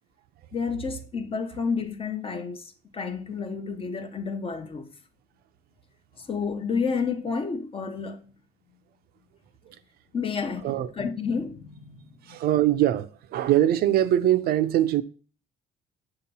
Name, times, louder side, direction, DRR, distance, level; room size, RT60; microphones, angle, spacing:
voice 1, 0.5-4.9 6.2-8.3 10.1-12.2, left 5 dB, 35° left, 0.8 m, -30 dB
voice 2, 12.3-15.0, right 12 dB, 65° right, 0.5 m, -22 dB
6.8 x 2.9 x 5.4 m
cardioid pair, 110°, 17 cm